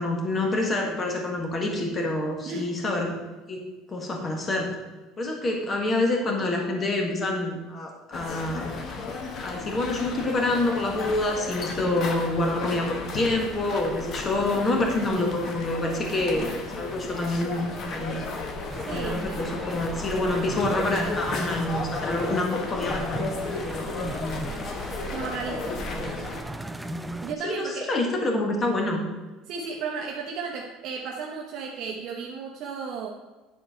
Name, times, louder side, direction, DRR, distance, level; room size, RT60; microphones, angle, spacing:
voice 1, 0.0-3.1 3.5-4.7 5.2-8.7 9.4-18.2 18.9-23.9 25.9-26.2 27.4-29.0, left 2 dB, 20° left, 1 dB, 1.4 m, -27 dB
sound 1, 8.1-26.4, left 3 dB, 35° left, 1.1 m, -34 dB
sound 2, 18.7-27.3, right 1 dB, 5° right, 0.3 m, -37 dB
voice 2, 18.9-19.4 25.1-25.8 27.2-27.9 29.5-33.1, right 5 dB, 50° right, -1 dB, 0.9 m, -34 dB
9.9 x 4.4 x 5.6 m, 1.2 s
cardioid pair, 160°, 0 cm